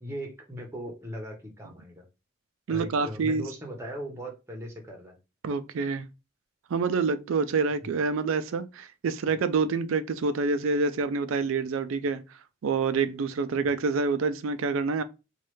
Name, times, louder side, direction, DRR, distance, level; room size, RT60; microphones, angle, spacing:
voice 1, 0.0-2.0 2.7-5.2 7.8-7.9, equal, 15° right, 0.8 m, -38 dB
voice 2, 2.7-3.4 5.4-6.1 6.7-12.2 12.6-15.0, right 4 dB, 75° right, 0.4 m, -27 dB
3.1 x 2.4 x 3.0 m
head